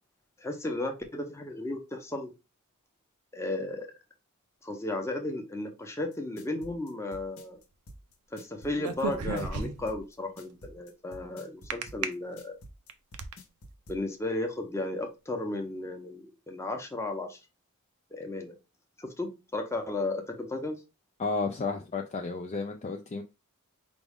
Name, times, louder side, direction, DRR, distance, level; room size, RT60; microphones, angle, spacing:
voice 1, 0.4-2.3 3.3-3.9 4.6-7.6 8.3-12.5 13.9-17.4 18.1-18.6 19.0-20.8, left 2 dB, 10° left, 0.8 m, -34 dB
sound 1, 6.1-14.0, equal, 65° left, 1.0 m, -49 dB
sound 2, 8.8-10.0 11.7-12.1 12.7-13.3, right 5 dB, 80° right, 0.6 m, -33 dB
voice 2, 21.2-23.2, left 4 dB, 30° left, 0.4 m, -32 dB
5.1 x 2.4 x 3.5 m
head